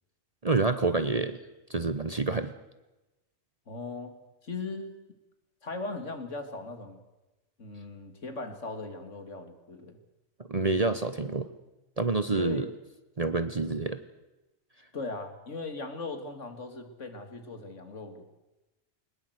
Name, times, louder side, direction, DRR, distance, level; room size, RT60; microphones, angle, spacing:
voice 1, 0.4-1.4 1.7-2.5 10.4-11.5 12.0-12.7 13.2-14.0, right 3 dB, 35° right, 11 dB, 0.9 m, -27 dB
voice 2, 3.7-4.1 4.4-5.0 5.6-7.0 7.6-10.0 12.3-12.7 14.9-18.3, left 3 dB, 65° left, 7 dB, 2.6 m, -38 dB
21.0 x 20.0 x 8.1 m, 1.0 s
omnidirectional pair, 1.4 m